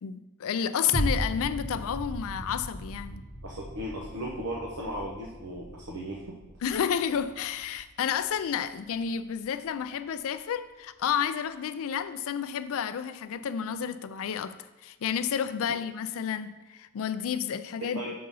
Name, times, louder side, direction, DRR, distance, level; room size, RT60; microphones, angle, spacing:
voice 1, 0.0-3.2 6.6-14.6 14.8-18.0, left 8 dB, 65° left, 0.4 m, -31 dB
sound 1, 0.9-9.5 10.0-10.1, equal, 20° left, 0.9 m, -37 dB
voice 2, 3.4-6.2 17.9-18.1, equal, 75° right, 0.9 m, -36 dB
6.5 x 3.9 x 5.5 m
head